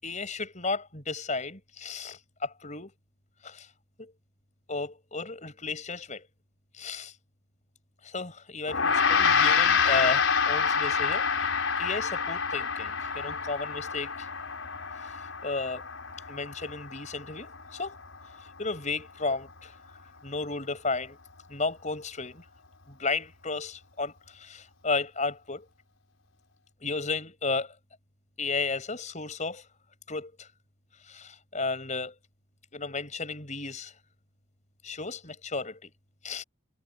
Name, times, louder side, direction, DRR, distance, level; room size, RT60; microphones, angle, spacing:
voice 1, 0.0-2.9 3.4-3.7 4.0-4.1 4.7-6.2 6.8-7.1 8.0-11.5 11.8-14.3 15.4-15.8 16.3-18.0 18.6-19.7 20.2-21.2 21.5-22.4 22.9-25.7 26.8-27.7 28.4-29.6 30.1-30.5 31.1-32.1 32.7-33.9 34.8-35.9 36.2-36.4, left 3 dB, 35° left, 6.2 m, -33 dB
Gong, 8.7-18.2, left 6 dB, 75° left, 4.7 m, -27 dB
head